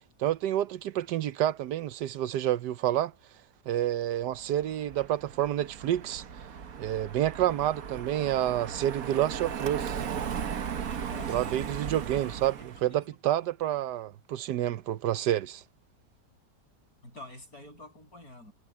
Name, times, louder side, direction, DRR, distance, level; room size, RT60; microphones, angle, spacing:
voice 1, 0.2-3.1 3.7-6.2 6.8-10.0 11.3-15.6, right 12 dB, 80° right, 1.3 m, -29 dB
Car passing by, 4.4-12.9, right 7 dB, 60° right, 1.5 m, -37 dB
voice 2, 11.0-11.6 12.6-13.4 13.6-13.9 17.0-18.5, left 2 dB, 60° left, 8.7 m, -48 dB
omnidirectional pair, 1.8 m